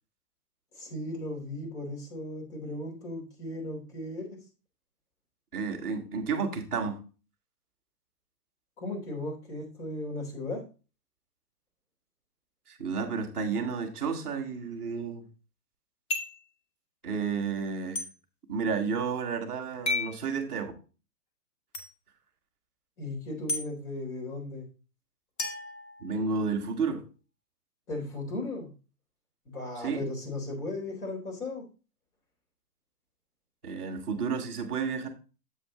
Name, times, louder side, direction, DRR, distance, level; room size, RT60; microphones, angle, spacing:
voice 1, 0.7-4.3 8.8-10.6 23.0-24.7 27.9-28.7 29.5-31.6, left 2 dB, 60° left, 0 dB, 4.2 m, -36 dB
voice 2, 5.5-7.0 12.7-15.3 17.0-18.0 18.5-20.7 26.0-27.0 29.8-30.0 33.6-35.1, right 5 dB, ahead, -14 dB, 0.4 m, -31 dB
sound 1, 16.1-16.5 17.9-18.1 19.8-20.2 21.7-21.9 23.5-23.6 25.4-26.5, left 2 dB, 25° left, 1.2 m, -32 dB
7.7 x 5.6 x 3.8 m, 0.34 s
hypercardioid pair, 150°, 48 cm